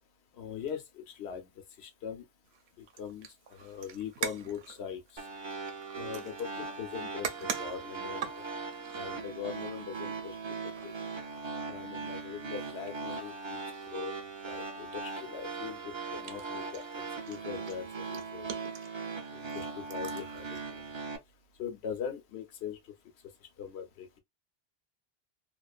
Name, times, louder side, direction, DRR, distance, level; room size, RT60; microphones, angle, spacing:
voice 1, 0.4-1.4 1.8-2.2 3.0-3.3 3.6-5.0 6.0-8.3 8.9-10.4 10.8-10.9 11.7-13.6 13.9-16.8 17.3-18.5 19.3-20.8 21.6-22.8 23.6-24.1, left 7 dB, 80° left, 0.9 m, -41 dB
sound 1, 2.4-20.6, right 7 dB, 80° right, 0.8 m, -45 dB
sound 2, 5.2-21.2, right 4 dB, 35° right, 0.5 m, -39 dB
2.4 x 2.4 x 2.3 m
omnidirectional pair, 1.1 m